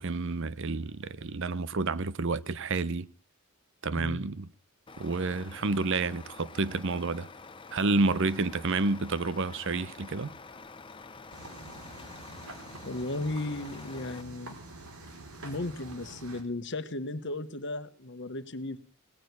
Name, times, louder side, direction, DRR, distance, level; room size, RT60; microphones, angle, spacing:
voice 1, 0.0-3.1 3.8-4.5 5.0-7.3 7.7-10.3, right 3 dB, 60° right, 0.7 m, -29 dB
Truck, 4.9-14.2, left 4 dB, 25° left, 0.7 m, -48 dB
sound 1, 11.3-16.4, right 2 dB, 85° right, 3.7 m, -47 dB
voice 2, 12.8-14.5 15.4-18.8, left 2 dB, 55° left, 1.3 m, -35 dB
18.5 x 6.5 x 9.6 m
head